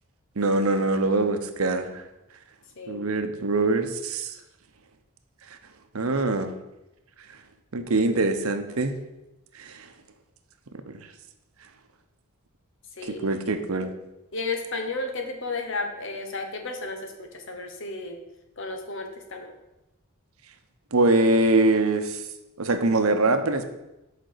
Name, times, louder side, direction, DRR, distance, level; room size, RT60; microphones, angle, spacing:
voice 1, 0.4-2.0 2.9-4.3 5.9-6.5 7.7-8.9 9.5-9.9 10.9-11.0 13.0-13.9 20.9-22.2 22.6-23.6, right 2 dB, 85° right, 8 dB, 0.9 m, -23 dB
voice 2, 14.3-18.2 18.6-19.5, left 3 dB, 60° left, 4 dB, 1.2 m, -33 dB
6.5 x 5.1 x 6.6 m, 0.97 s
head